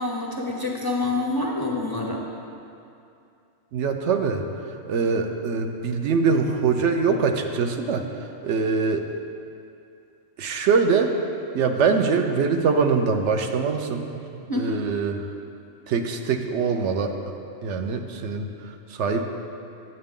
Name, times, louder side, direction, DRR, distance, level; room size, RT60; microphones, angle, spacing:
voice 1, 0.0-2.2 14.5-14.8, left 2 dB, 30° left, -1 dB, 0.4 m, -27 dB
voice 2, 3.7-4.4 4.7-9.1 10.4-11.1 11.5-14.2 14.6-15.1 15.9-17.1 17.6-19.2, right 5 dB, 70° right, 5 dB, 0.9 m, -23 dB
8.9 x 7.7 x 3.7 m, 2.6 s
omnidirectional pair, 1.3 m